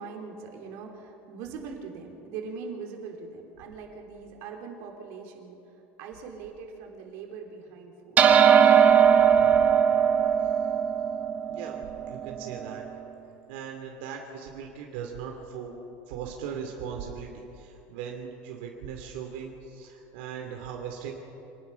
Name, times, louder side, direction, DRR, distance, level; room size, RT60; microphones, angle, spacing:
voice 1, 0.0-5.6 6.0-8.2, right 5 dB, 55° right, 1 dB, 3.7 m, -41 dB
sound 1, 8.2-12.8, right 8 dB, 30° right, 1.4 m, -20 dB
voice 2, 11.5-11.8 12.1-12.8 13.5-15.7 16.1-21.1, right 7 dB, 80° right, 2 dB, 2.7 m, -39 dB
27.0 x 19.5 x 5.8 m, 2.9 s
cardioid pair, 165°, 6 cm